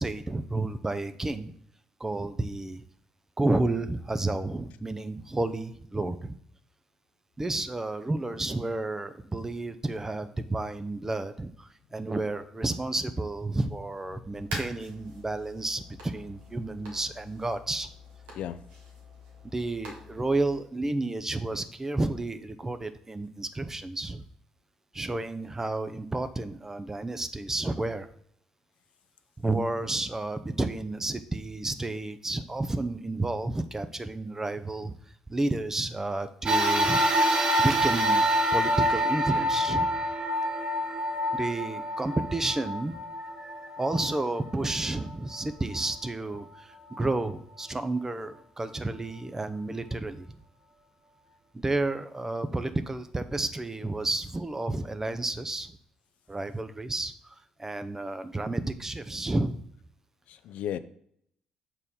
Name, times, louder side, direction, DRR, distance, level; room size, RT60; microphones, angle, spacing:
voice 1, 0.0-1.5 2.0-2.8 3.4-6.4 7.4-17.9 19.4-24.3 24.9-28.1 29.4-34.9 35.3-40.0 41.3-50.3 51.6-55.7 56.3-59.6, right 2 dB, 20° right, 11 dB, 0.7 m, -31 dB
sound 1, 14.3-20.6, equal, 85° right, 1.9 m, -45 dB
sound 2, 36.5-45.1 45.7-45.8 46.9-47.0, equal, 40° right, 1.2 m, -26 dB
voice 2, 60.3-60.8, left 10 dB, 70° left, 12 dB, 0.4 m, -34 dB
6.6 x 4.5 x 3.7 m, 0.67 s
supercardioid pair, 60°, 2 cm